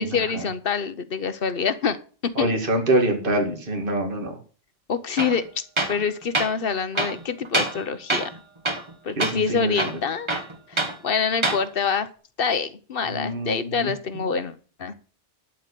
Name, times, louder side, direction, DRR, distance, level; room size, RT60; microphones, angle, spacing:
voice 1, 0.0-2.0 2.4-2.5 4.9-8.3 9.0-10.3 10.7-12.1 12.4-14.9, left 6 dB, 55° left, 12 dB, 1.1 m, -26 dB
voice 2, 2.4-4.3 9.2-9.7 13.1-13.9, right 1 dB, 50° right, 3 dB, 2.3 m, -24 dB
Tools, 5.2-5.4 5.8-6.0 6.3-6.5 6.9-7.8 8.1-8.4 8.6-8.9 9.2-9.4 9.7-11.0 11.3-11.6, right 2 dB, 25° right, 1.2 m, -25 dB
12.0 x 4.7 x 8.4 m, 0.39 s
omnidirectional pair, 1.2 m